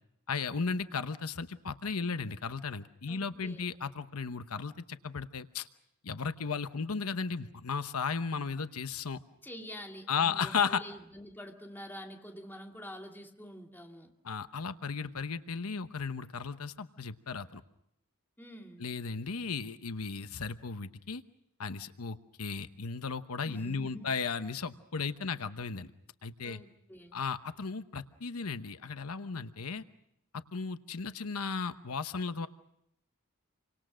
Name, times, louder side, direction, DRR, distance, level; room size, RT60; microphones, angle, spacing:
voice 1, 0.3-5.7 6.0-9.2 10.1-10.8 14.2-17.6 18.8-21.2 21.6-25.9 26.2-26.6 27.1-29.8 30.3-32.5, left 5 dB, 85° left, 11 dB, 1.0 m, -35 dB
voice 2, 3.1-3.7 9.4-14.1 18.4-18.8 23.4-24.1 26.4-27.2, equal, 10° left, 1 dB, 2.4 m, -47 dB
29.0 x 25.0 x 6.3 m, 0.77 s
head